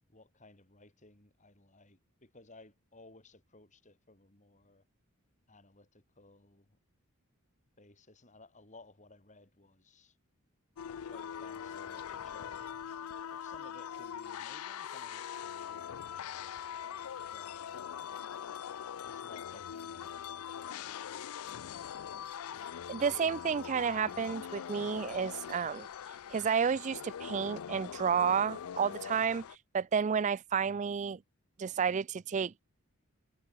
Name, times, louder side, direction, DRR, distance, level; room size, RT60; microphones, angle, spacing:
voice 1, 0.1-4.8 5.5-6.8 7.8-10.2 11.1-12.7 13.3-15.9 16.2-16.6 17.2-18.1 19.0-21.3, left 2 dB, 35° left, 4.1 m, -58 dB
sound 1, 10.8-29.6, left 8 dB, 80° left, 0.4 m, -42 dB
voice 2, 22.9-25.9 26.3-29.5 29.7-31.2 31.6-32.5, right 6 dB, 35° right, 0.3 m, -31 dB
head